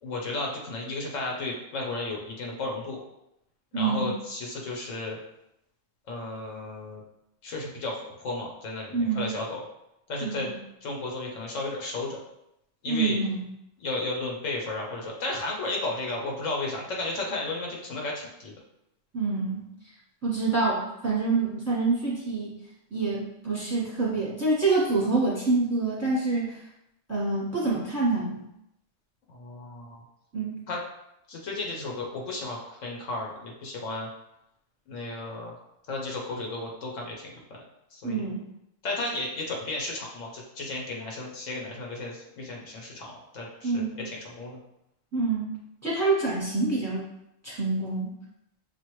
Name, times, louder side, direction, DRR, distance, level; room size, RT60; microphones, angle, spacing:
voice 1, 0.0-3.0 3.7-5.2 6.1-7.0 7.4-9.6 10.1-10.5 10.8-12.2 12.8-13.2 13.8-18.5 29.3-30.0 30.7-30.8 31.3-34.1 34.9-35.5 35.9-37.6 37.9-38.3 38.8-44.6, left 2 dB, 70° left, -1 dB, 1.2 m, -34 dB
voice 2, 3.7-4.1 8.9-9.3 10.2-10.6 12.9-13.4 19.1-19.6 20.2-22.6 22.9-26.6 27.1-28.4 30.3-30.6 38.0-38.4 43.6-44.0 45.1-45.5 45.8-47.1 47.4-48.1, right 3 dB, 15° right, -5 dB, 1.0 m, -26 dB
6.1 x 2.5 x 3.0 m, 0.83 s
omnidirectional pair, 1.4 m